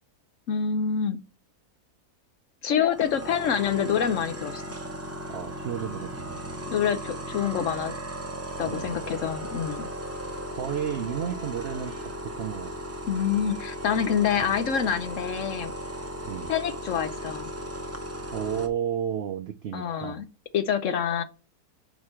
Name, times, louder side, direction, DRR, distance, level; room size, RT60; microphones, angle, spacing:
voice 1, 0.5-1.2 2.6-4.6 6.7-7.9 8.6-9.9 13.1-15.7 16.5-17.5 19.7-20.2 20.5-21.2, left 8 dB, 60° left, 0.9 m, -26 dB
sound 1, 2.9-18.7, equal, 15° right, 0.6 m, -36 dB
voice 2, 5.3-6.6 8.7-9.0 10.5-11.9 12.2-12.7 14.4-14.6 16.2-16.5 18.3-20.2, right 9 dB, 85° right, 0.5 m, -32 dB
Wind instrument woodwind instrument, 8.5-12.3 13.1-16.8, left 1 dB, 80° left, 2.3 m, -51 dB
5.1 x 4.7 x 5.7 m
omnidirectional pair, 1.6 m